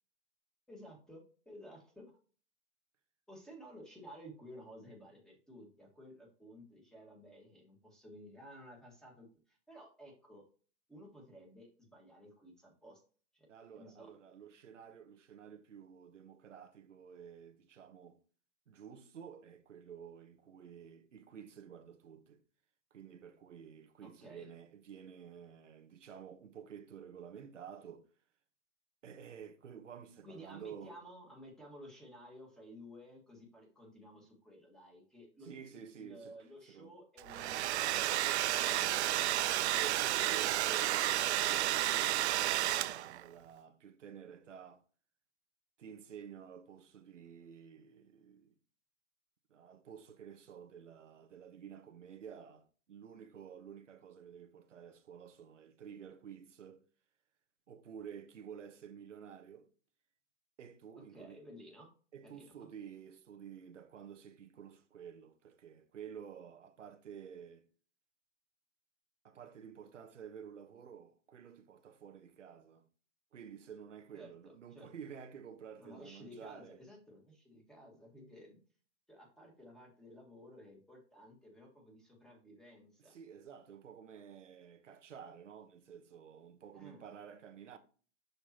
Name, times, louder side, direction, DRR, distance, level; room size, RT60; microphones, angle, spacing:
voice 1, 0.7-2.1 3.3-10.4 10.9-13.0 13.3-13.5 13.7-14.1 24.0-24.5 30.2-40.0 40.2-40.3 61.1-61.9 62.2-62.7 74.1-74.3 74.7-74.9 75.8-78.6 79.1-83.1 86.7-87.0, equal, ahead, 1.8 m, -54 dB
voice 2, 13.5-18.2 18.7-22.4 22.9-28.1 29.0-30.9 35.4-36.3 36.7-36.9 39.7-44.8 45.8-48.5 49.5-56.8 57.7-59.7 60.6-61.4 62.1-67.6 69.2-72.9 73.3-76.8 83.0-87.8, right 8 dB, 85° right, 1.1 m, -51 dB
Domestic sounds home sounds, 37.2-43.2, right 14 dB, 65° right, 0.5 m, -31 dB
6.8 x 5.9 x 2.9 m
hypercardioid pair, 135°, 36 cm